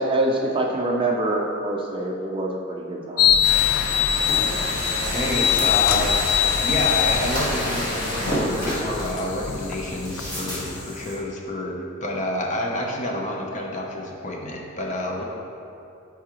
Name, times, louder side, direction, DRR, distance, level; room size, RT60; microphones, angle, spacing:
voice 1, 0.0-3.4, right 2 dB, 25° right, 0 dB, 0.5 m, -25 dB
sound 1, 3.2-10.8, left 10 dB, 75° left, 0.4 m, -23 dB
sound 2, 3.4-8.5, equal, 55° left, 1.4 m, -30 dB
sound 3, 4.1-11.2, equal, 20° left, 1.5 m, -32 dB
voice 2, 5.1-6.2 6.6-15.2, left 1 dB, 35° left, -1 dB, 0.7 m, -28 dB
8.4 x 4.7 x 3.0 m, 2.6 s
head